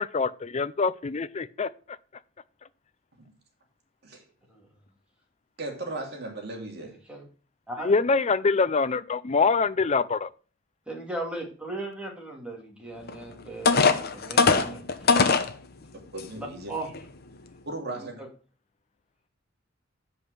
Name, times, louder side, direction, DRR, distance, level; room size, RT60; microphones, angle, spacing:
voice 1, 0.0-1.7 7.8-10.3, left 4 dB, 35° left, 0.5 m, -24 dB
voice 2, 5.6-7.0 16.1-16.7 17.7-18.2, right 2 dB, 55° right, 2.5 m, -36 dB
voice 3, 6.8-7.2 7.7-7.9 10.9-15.2 16.4-16.9 18.0-18.3, right 2 dB, 5° right, 2.5 m, -38 dB
sound 1, 13.1-13.2 13.7-15.5 16.2-16.3 16.8-17.0, left 4 dB, 50° left, 0.9 m, -20 dB
7.8 x 5.3 x 6.3 m
head